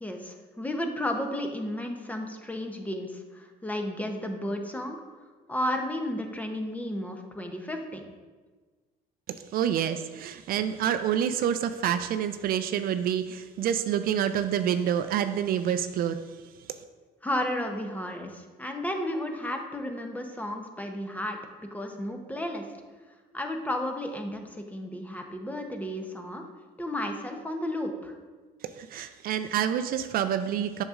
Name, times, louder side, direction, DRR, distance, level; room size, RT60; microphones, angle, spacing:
voice 1, 0.0-5.0 5.5-8.0 17.2-22.6 23.3-26.5 26.8-28.1, left 1 dB, 10° left, 4 dB, 0.7 m, -33 dB
voice 2, 9.3-16.2 16.7-16.8 28.6-30.8, right 9 dB, 60° right, 10 dB, 0.4 m, -28 dB
7.8 x 6.4 x 2.4 m, 1.4 s
cardioid pair, 110°, 17 cm